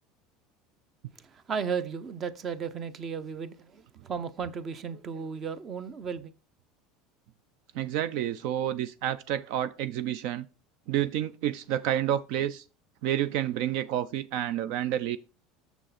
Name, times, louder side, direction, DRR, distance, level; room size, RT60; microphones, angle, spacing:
voice 1, 1.1-6.3, right 6 dB, 30° right, 0.7 m, -35 dB
voice 2, 7.7-10.5 10.9-12.6 13.0-15.2, right 11 dB, 65° right, 0.4 m, -29 dB
6.9 x 6.3 x 4.1 m
supercardioid pair, 140°, 0 cm